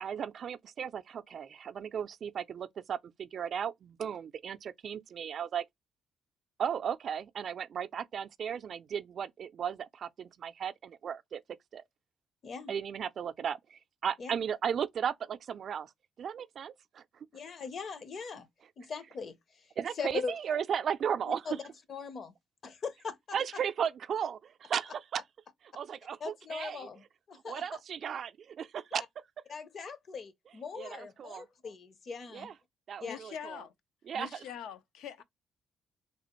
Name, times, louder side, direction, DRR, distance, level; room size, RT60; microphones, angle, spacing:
voice 1, 0.0-5.6 6.6-11.4 11.7-11.8 12.7-15.9 16.2-17.0 19.8-21.6 23.3-25.2 25.7-26.9 27.4-29.0 30.8-31.5 32.3-32.5 32.9-33.3 34.1-34.3, right 8 dB, 60° right, 0.4 m, -35 dB
voice 2, 12.4-12.7 14.2-14.3 17.3-18.5 18.8-19.4 20.0-20.3 21.5-21.6 21.9-22.3 22.6-23.2 26.2-27.8 29.0-29.1 29.5-32.5 33.0-33.2, left 5 dB, 50° left, 0.7 m, -40 dB
voice 3, 33.0-33.7 34.1-35.2, left 8 dB, 90° left, 0.5 m, -43 dB
3.4 x 2.4 x 2.9 m
cardioid pair, 90°, 0 cm